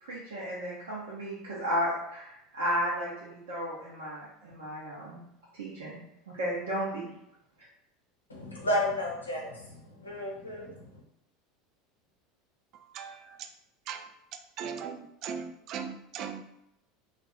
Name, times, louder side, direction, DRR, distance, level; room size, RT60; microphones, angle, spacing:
voice 1, 0.0-5.2 5.6-6.9, equal, 70° right, -7 dB, 0.7 m, -34 dB
voice 2, 8.3-11.0, left 1 dB, 85° left, -2 dB, 0.7 m, -33 dB
voice 3, 12.7-13.4 13.9-14.0 14.6-16.4, right 7 dB, 45° right, 7 dB, 0.3 m, -39 dB
2.4 x 2.4 x 3.4 m, 0.81 s
figure-of-eight pair, 75°, 0 cm